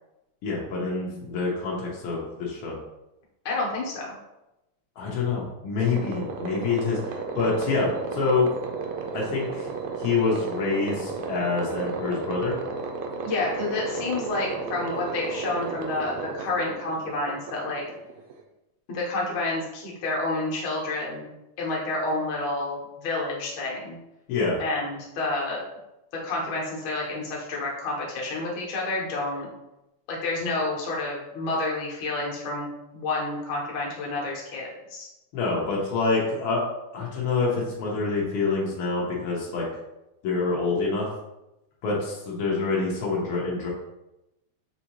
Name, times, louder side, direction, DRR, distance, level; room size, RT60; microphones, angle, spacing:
voice 1, 0.4-2.8 5.0-8.5 9.1-9.7 10.0-12.5 24.3-24.6 35.3-36.6 36.9-39.7 40.2-41.1 41.8-43.7, left 4 dB, 90° left, -4 dB, 1.1 m, -26 dB
voice 2, 3.4-4.1 13.2-17.8 18.9-21.3 21.6-24.0 24.6-25.6 26.2-29.5 30.1-32.7 32.9-35.1, left 2 dB, 65° left, -3 dB, 1.2 m, -29 dB
sound 1, 5.8-18.4, right 4 dB, 90° right, 1.4 m, -33 dB
6.2 x 2.7 x 2.9 m, 0.93 s
omnidirectional pair, 3.5 m